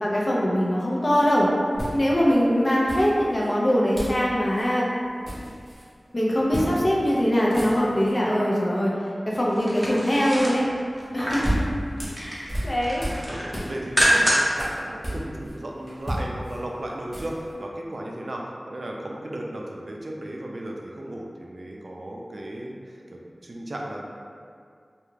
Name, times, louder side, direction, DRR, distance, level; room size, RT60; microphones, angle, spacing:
voice 1, 0.0-1.5 1.9-4.9 6.1-8.9 9.3-10.6 11.1-11.6 12.2-13.1, equal, 45° left, -4 dB, 0.5 m, -22 dB
sound 1, 1.1-1.2 1.8-2.4 2.9-3.5 3.9-4.2 4.5-4.7 5.0-5.9 6.5-6.7 7.0-7.2 7.4-8.1 11.0-13.2 13.5-15.5 15.9-17.5, equal, 5° left, 0.9 m, -32 dB
sound 2, 9.5-11.6 12.0-12.5 12.8-14.6 15.0-15.1, equal, 15° right, 0.6 m, -25 dB
voice 2, 13.3-24.0, right 1 dB, 60° right, -1 dB, 0.3 m, -35 dB
2.3 x 2.2 x 3.1 m, 2.2 s
wide cardioid pair, 50°, 0 cm